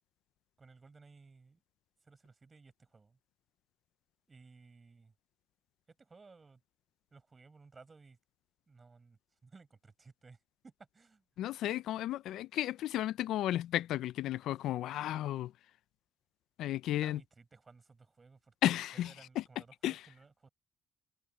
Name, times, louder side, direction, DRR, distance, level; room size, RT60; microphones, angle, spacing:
voice 1, 0.6-1.6 2.0-3.2 4.3-5.1 6.0-6.6 7.1-8.2 8.7-10.4 10.6-11.2 16.8-20.5, right 4 dB, 25° right, 6.7 m, -58 dB
voice 2, 11.4-15.5 16.6-17.2 18.6-19.4 19.8-20.0, left 13 dB, 85° left, 0.4 m, -33 dB
cardioid pair, 125°, 0 cm